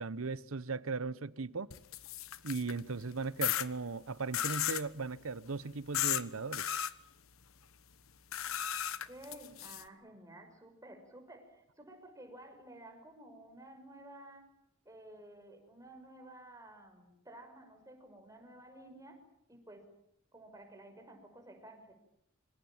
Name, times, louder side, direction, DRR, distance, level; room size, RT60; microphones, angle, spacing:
voice 1, 0.0-1.7 2.4-6.8, right 4 dB, 85° right, 0.9 m, -38 dB
sound 1, 1.7-2.8 3.4-3.7 4.3-4.9 5.9-6.2 6.5-6.9 8.3-9.8, left 11 dB, 90° left, 1.3 m, -34 dB
voice 2, 9.0-14.4 14.8-19.2 19.5-19.9 20.3-21.9, right 1 dB, 15° right, 6.0 m, -53 dB
27.0 x 25.0 x 7.3 m
head